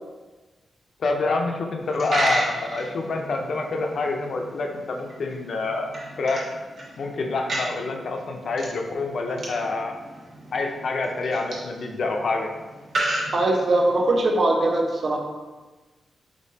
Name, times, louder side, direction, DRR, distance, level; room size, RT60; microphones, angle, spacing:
voice 1, 1.0-5.9 6.2-6.5 7.0-10.0 10.5-12.5, left 3 dB, 55° left, 2 dB, 0.6 m, -27 dB
Coin (dropping), 1.8-14.1, right 1 dB, 60° right, 1.2 m, -33 dB
voice 2, 13.3-15.2, right 2 dB, 40° right, 1 dB, 0.7 m, -21 dB
5.2 x 3.7 x 2.8 m, 1.2 s
wide cardioid pair, 140°, 0 cm